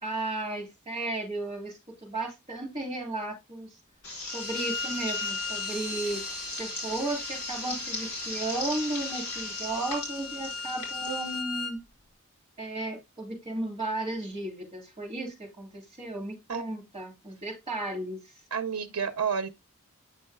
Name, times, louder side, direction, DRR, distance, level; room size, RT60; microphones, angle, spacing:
voice 1, 0.0-3.8 4.2-6.2 6.6-11.8 12.6-18.4, right 2 dB, 25° right, 3.2 m, -34 dB
sound 1, 4.0-11.4, left 2 dB, 80° left, 3.8 m, -37 dB
Bowed string instrument, 4.3-11.7, left 4 dB, 15° left, 1.4 m, -38 dB
voice 2, 18.5-19.5, right 6 dB, 85° right, 0.6 m, -30 dB
8.7 x 5.4 x 2.3 m
head